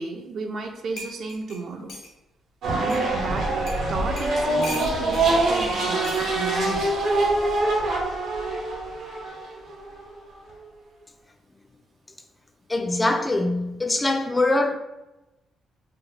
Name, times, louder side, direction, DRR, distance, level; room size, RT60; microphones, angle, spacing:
voice 1, 0.0-1.9 2.7-3.5 3.9-6.9, right 3 dB, 60° right, 0.5 m, -33 dB
sound 1, 0.6-0.7 1.0-2.1 2.9-3.0 3.7-3.8 4.2-5.2 6.0-6.3 7.4-7.7, left 1 dB, 75° left, 0.9 m, -38 dB
sound 2, 2.6-10.5, right 2 dB, 80° right, 0.9 m, -24 dB
voice 2, 12.7-14.8, left 2 dB, 20° left, 0.3 m, -23 dB
2.8 x 2.1 x 3.9 m
cardioid pair, 90°, 0 cm